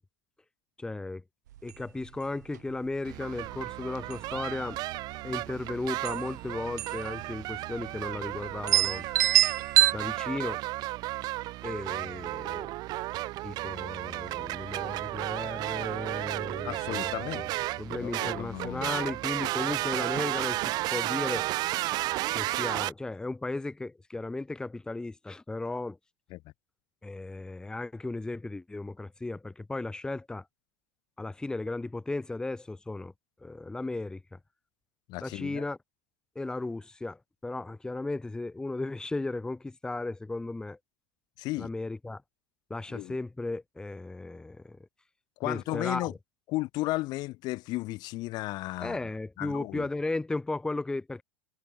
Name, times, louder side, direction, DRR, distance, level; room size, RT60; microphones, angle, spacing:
voice 1, 0.8-1.2 1.6-4.8 5.2-9.1 9.9-10.6 11.6-12.7 13.4-17.1 17.4-17.5 17.8-21.5 22.3-26.0 27.0-30.4 31.2-33.1 33.4-34.4 35.2-35.8 36.3-40.8 41.6-42.2 42.7-44.8 45.4-46.2 48.8-51.2, left 2 dB, 10° left, 3.2 m, -35 dB
sound 1, 1.6-1.7 2.0-2.1 2.5-2.9 3.4-3.7 4.0-4.6 5.7-5.8 6.0-6.2 6.8-7.1 7.3-7.4 8.1-8.2 8.7-9.9, right 13 dB, 90° right, 1.0 m, -24 dB
sound 2, 3.0-22.9, right 18 dB, 50° right, 5.0 m, -33 dB
voice 2, 16.6-17.4 17.9-19.0 26.3-26.4 35.1-35.6 41.4-41.7 42.9-43.2 45.4-46.1 46.5-49.0 49.4-49.9, left 19 dB, 50° left, 5.3 m, -34 dB
supercardioid pair, 120°, 9 cm